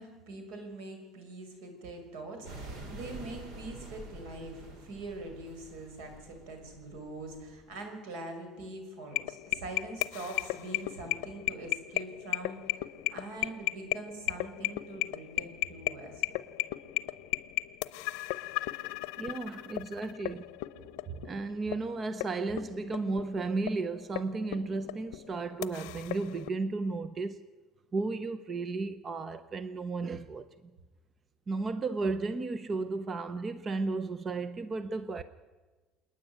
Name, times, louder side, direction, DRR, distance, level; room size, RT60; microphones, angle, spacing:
voice 1, 0.0-12.8 13.1-16.4, right 2 dB, 80° right, 5.6 m, -43 dB
sound 1, 2.4-7.7, right 2 dB, 50° right, 3.3 m, -47 dB
sound 2, 9.1-26.5, left 20 dB, 85° left, 0.7 m, -36 dB
voice 2, 19.2-20.5 21.2-27.4 27.9-30.5 31.5-35.2, right 3 dB, 20° right, 0.6 m, -34 dB
27.5 x 9.8 x 9.5 m
cardioid pair, 170°, 0 cm